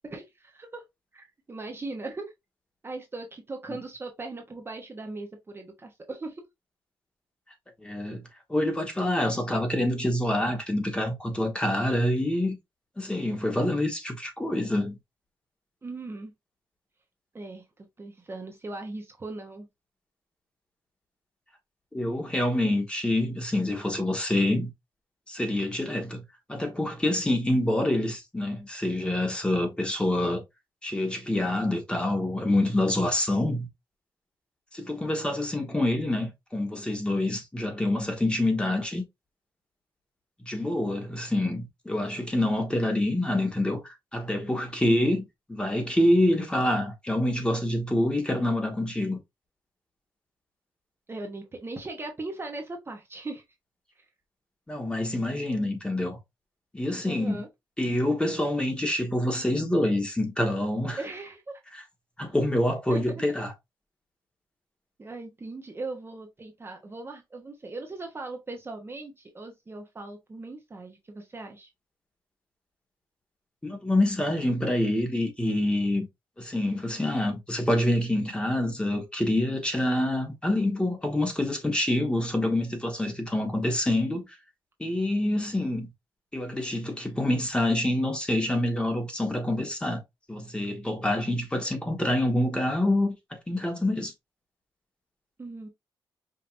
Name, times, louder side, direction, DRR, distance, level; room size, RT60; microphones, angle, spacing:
voice 1, 0.0-0.8 1.1-2.3 2.8-6.4 15.8-16.3 17.3-19.7 44.9-45.1 51.1-53.4 54.0-54.1 57.0-57.5 60.9-61.4 62.9-63.2 65.0-71.7 95.4-95.7, right 2 dB, 25° right, 0.9 m, -39 dB
voice 2, 7.8-8.2 8.5-12.6 13.0-15.0 21.9-24.7 25.3-26.2 26.5-30.4 30.8-33.7 34.7-39.0 40.4-45.2 45.5-49.2 54.7-56.2 56.7-57.4 57.8-61.0 62.2-63.5 73.6-76.1 76.4-84.3 84.8-85.9 86.3-90.0 90.3-93.1 93.5-94.1, left 1 dB, 10° left, 1.4 m, -26 dB
5.2 x 2.8 x 2.5 m
cardioid pair, 100°, 9 cm